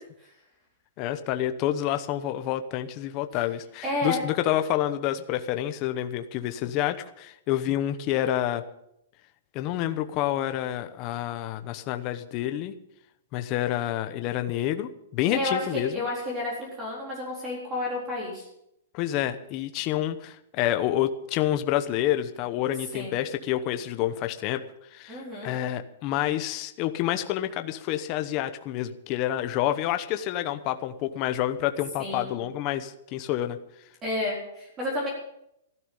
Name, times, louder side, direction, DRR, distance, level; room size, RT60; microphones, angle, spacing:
voice 1, 1.0-8.6 9.5-12.7 13.3-16.1 18.9-24.6 24.9-33.6, left 12 dB, 25° left, 8 dB, 0.9 m, -28 dB
voice 2, 3.8-4.2 15.3-18.5 22.9-23.1 25.1-25.5 32.0-32.4 34.0-35.1, left 2 dB, 15° right, -3 dB, 4.0 m, -31 dB
15.0 x 13.0 x 5.5 m, 0.78 s
hypercardioid pair, 175°, 0 cm